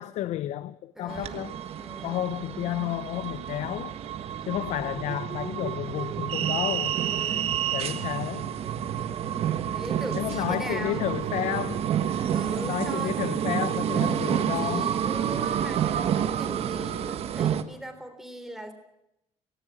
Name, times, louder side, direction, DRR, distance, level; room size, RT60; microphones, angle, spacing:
voice 1, 0.0-1.6 2.0-4.0 4.5-7.0 7.7-8.5 10.1-12.3 12.6-14.9, left 13 dB, 65° left, 0.7 m, -31 dB
voice 2, 1.0-1.5 1.8-2.3 7.0-7.6 9.7-11.1 12.3-13.2 13.9-18.7, equal, 5° right, 3.6 m, -40 dB
sound 1, 1.1-17.6, right 9 dB, 55° right, 1.5 m, -29 dB
18.0 x 17.5 x 8.4 m
cardioid pair, 120°, 12 cm